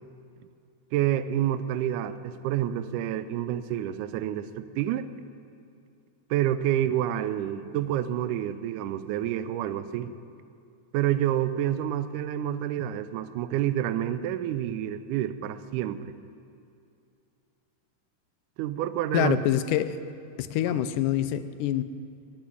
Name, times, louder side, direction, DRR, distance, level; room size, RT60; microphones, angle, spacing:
voice 1, 0.9-5.1 6.3-10.1 10.9-16.1 18.6-19.4 20.7-20.8, right 11 dB, 80° right, 13 dB, 2.1 m, -28 dB
voice 2, 19.1-20.0 20.4-21.8, left 12 dB, 85° left, 12 dB, 2.2 m, -26 dB
18.0 x 7.2 x 8.3 m, 2.6 s
omnidirectional pair, 3.6 m